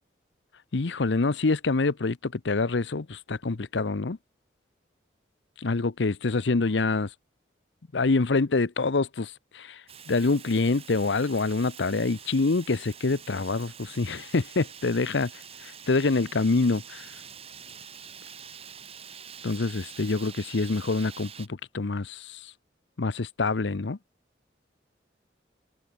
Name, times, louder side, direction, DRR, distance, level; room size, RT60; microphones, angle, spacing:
voice 1, 0.7-4.2 5.6-7.1 7.9-9.8 10.1-15.3 15.6-17.1 19.4-22.4 23.0-24.0, left 3 dB, 80° left, 0.8 m, -26 dB
Fire, 9.9-21.5, right 7 dB, 35° right, 3.2 m, -46 dB
head